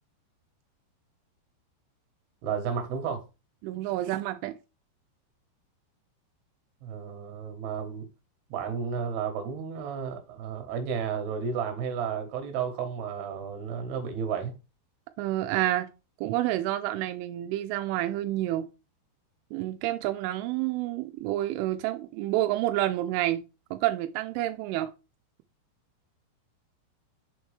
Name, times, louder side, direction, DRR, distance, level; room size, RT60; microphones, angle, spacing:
voice 1, 2.4-3.2 6.8-8.1 8.5-14.5, right 6 dB, 70° right, 3.0 m, -32 dB
voice 2, 3.6-4.5 15.2-15.9 16.2-18.7 19.5-23.4 23.7-24.9, right 14 dB, 85° right, 3.0 m, -29 dB
7.0 x 4.4 x 3.3 m
omnidirectional pair, 5.4 m